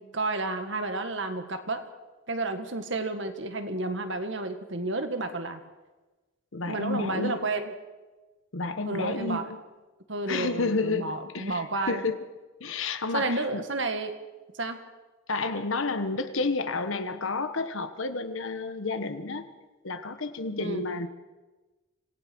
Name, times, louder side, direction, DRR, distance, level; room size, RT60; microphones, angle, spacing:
voice 1, 0.0-1.8 2.3-5.6 6.7-7.7 8.9-9.5 10.1-12.0 13.1-14.1 14.6-14.8 20.6-20.8, right 2 dB, 60° right, 7 dB, 1.8 m, -31 dB
voice 2, 6.5-7.5 8.5-9.6 10.3-12.2 12.6-13.6 15.3-19.4 19.8-21.1, left 3 dB, 65° left, 10 dB, 1.3 m, -30 dB
26.5 x 17.0 x 6.2 m, 1.2 s
head